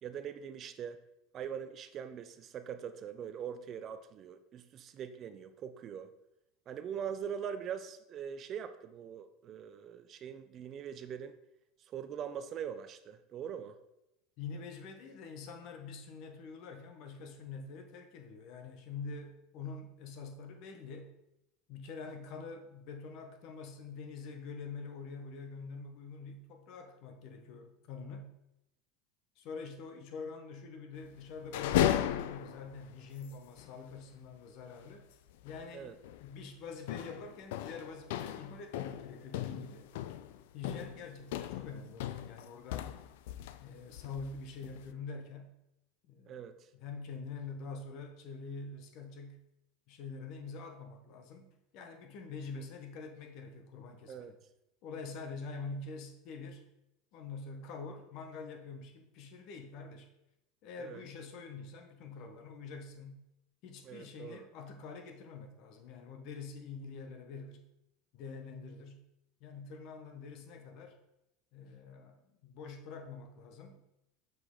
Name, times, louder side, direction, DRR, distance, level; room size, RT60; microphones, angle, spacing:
voice 1, 0.0-1.0 1.3-6.1 6.7-11.4 11.9-13.8 35.7-35.9 46.3-46.5 54.1-54.3 60.8-61.0 63.8-64.4, right 8 dB, 30° right, 11 dB, 0.3 m, -42 dB
voice 2, 14.4-21.1 21.7-28.3 29.4-35.1 35.4-39.8 40.5-43.0 43.6-45.5 46.1-46.4 46.7-49.4 49.9-54.4 54.8-56.6 57.1-60.1 60.6-63.2 63.6-67.6 68.1-69.0 69.4-71.0 71.5-73.8, left 4 dB, 45° left, 6 dB, 0.8 m, -45 dB
sound 1, 31.4-32.8 33.2-33.3 33.6-33.7 35.4-35.7 36.0-36.3 36.9-43.6 43.9-44.9, left 11 dB, 75° left, 0.3 m, -36 dB
6.0 x 5.0 x 3.6 m, 0.88 s
supercardioid pair, 160°, 0 cm